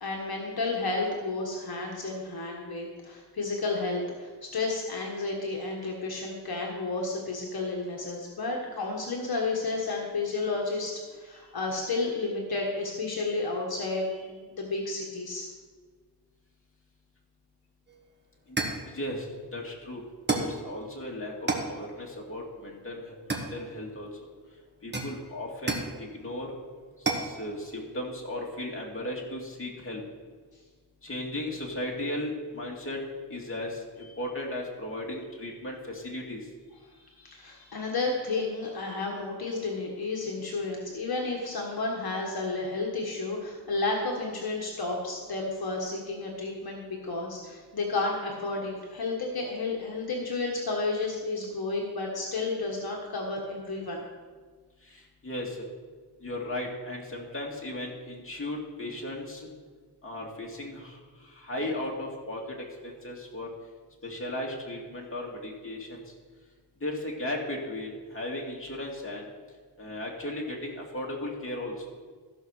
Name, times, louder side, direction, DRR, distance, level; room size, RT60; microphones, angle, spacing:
voice 1, 0.0-15.5 37.2-54.0, left 3 dB, 60° left, -1 dB, 1.5 m, -32 dB
sound 1, 17.9-18.0 18.6-18.9 20.3-20.6 21.5-21.8 23.3-23.9 24.9-26.0 27.1-27.3, right 3 dB, 25° right, 1.4 m, -30 dB
voice 2, 18.9-19.3 19.5-20.0 20.3-24.1 24.8-26.5 27.0-30.0 31.0-33.0 33.3-36.4 54.8-55.6 56.2-59.5 60.0-62.6 62.8-63.5 64.0-66.0 66.8-69.3 69.8-71.7, left 1 dB, 30° left, -2 dB, 2.2 m, -36 dB
14.5 x 5.3 x 6.4 m, 1.5 s
wide cardioid pair, 110°, 42 cm